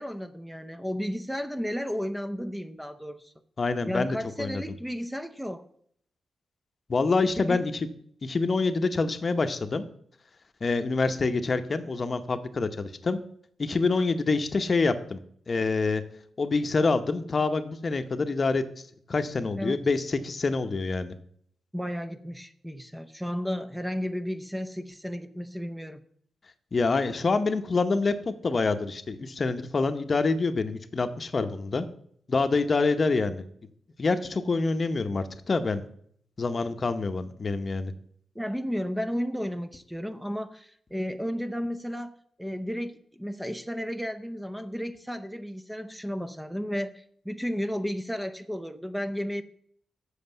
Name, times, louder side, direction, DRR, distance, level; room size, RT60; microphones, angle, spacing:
voice 1, 0.0-3.3 3.9-5.7 7.3-7.6 19.5-19.8 21.7-26.0 38.3-49.4, equal, 5° right, 10 dB, 0.7 m, -33 dB
voice 2, 3.6-4.6 6.9-7.7 8.2-9.9 10.6-13.2 13.6-15.2 15.5-16.0 16.4-18.6 19.1-21.1 26.7-31.9 32.3-33.4 34.0-35.9 36.4-37.9, left 3 dB, 40° left, 9 dB, 0.9 m, -26 dB
7.6 x 6.5 x 8.1 m, 0.65 s
cardioid pair, 85°, 0 cm